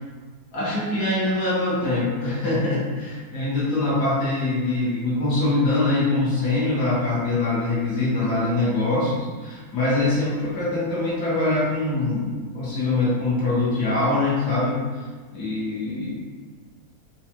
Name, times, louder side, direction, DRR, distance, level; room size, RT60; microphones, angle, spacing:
voice 1, 0.5-14.8 15.3-16.1, left 2 dB, 65° left, -7 dB, 1.5 m, -23 dB
4.6 x 2.3 x 2.9 m, 1.4 s
omnidirectional pair, 2.0 m